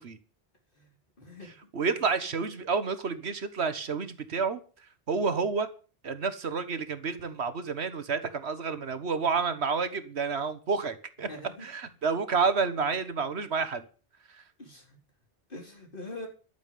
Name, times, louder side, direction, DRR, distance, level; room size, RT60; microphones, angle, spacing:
voice 1, 1.2-1.5 1.9-2.0 11.2-11.7 14.6-15.0 15.5-16.3, left 2 dB, 50° left, 2 dB, 4.2 m, -43 dB
voice 2, 1.7-4.6 5.1-5.7 6.0-11.3 11.6-13.8, right 5 dB, 70° right, 12 dB, 1.5 m, -29 dB
12.5 x 7.2 x 9.2 m, 0.38 s
omnidirectional pair, 1.1 m